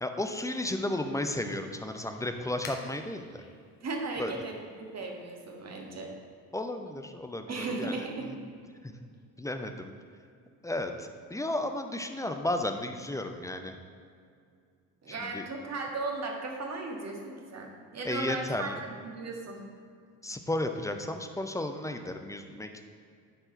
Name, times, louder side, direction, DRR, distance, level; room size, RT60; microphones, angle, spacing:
voice 1, 0.0-3.4 4.2-4.4 6.5-8.4 8.8-8.9 9.4-9.9 10.6-13.8 15.3-15.5 18.0-18.8 20.2-22.8, left 1 dB, 5° left, 6 dB, 0.6 m, -33 dB
sound 1, 0.7-5.9, left 4 dB, 40° left, 1.3 m, -53 dB
voice 2, 3.8-6.1 7.5-8.3 15.0-19.6, right 3 dB, 30° right, 0 dB, 1.7 m, -36 dB
11.0 x 4.5 x 4.4 m, 2.3 s
figure-of-eight pair, 55°, 49 cm